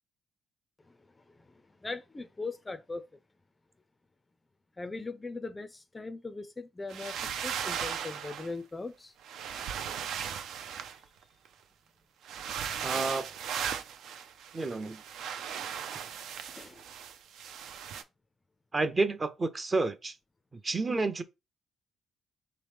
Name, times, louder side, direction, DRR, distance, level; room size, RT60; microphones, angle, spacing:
voice 1, 1.8-3.1 4.8-7.2 7.4-9.1 16.5-16.8, left 3 dB, 20° left, 0.4 m, -39 dB
sound 1, 6.9-8.5 9.2-11.5 12.2-18.0, right 8 dB, 80° right, 0.4 m, -37 dB
voice 2, 12.8-13.3 14.5-15.0 18.7-20.1 20.6-21.2, right 3 dB, 30° right, 0.6 m, -30 dB
3.4 x 3.0 x 3.3 m
cardioid pair, 90°, 0 cm